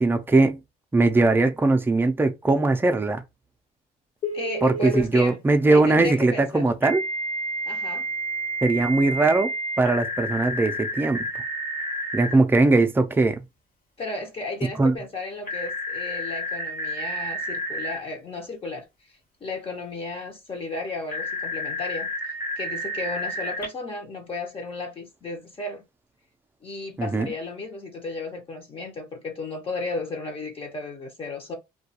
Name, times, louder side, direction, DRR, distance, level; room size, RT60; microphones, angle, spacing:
voice 1, 0.0-0.6 0.9-3.2 4.6-7.0 8.6-9.5 9.8-11.2 12.1-13.4 14.8-15.0 27.0-27.3, right 3 dB, 10° right, 0.4 m, -20 dB
Telephone, 4.2-5.0 6.8-12.3 15.4-18.0 21.1-23.6, equal, 55° left, 1.0 m, -30 dB
voice 2, 4.3-5.4 5.7-6.7 7.7-8.1 14.0-19.1 19.4-22.1 22.6-25.8 26.6-31.6, left 3 dB, 35° left, 0.7 m, -34 dB
2.3 x 2.2 x 2.8 m
cardioid pair, 110°, 17 cm